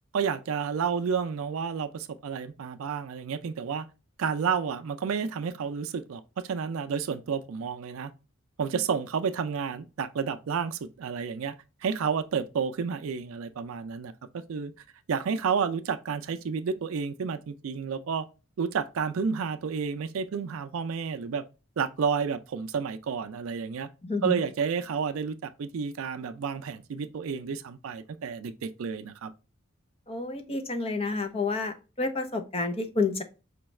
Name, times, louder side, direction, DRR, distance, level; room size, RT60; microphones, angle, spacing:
voice 1, 0.1-3.9 4.2-8.1 8.6-11.6 11.8-14.1 14.5-14.7 15.1-18.3 18.6-21.4 21.8-23.9 24.2-29.3, right 6 dB, 70° right, 0.4 m, -30 dB
voice 2, 24.0-24.3 30.1-33.2, left 3 dB, 25° left, 0.6 m, -29 dB
5.1 x 2.3 x 3.1 m
head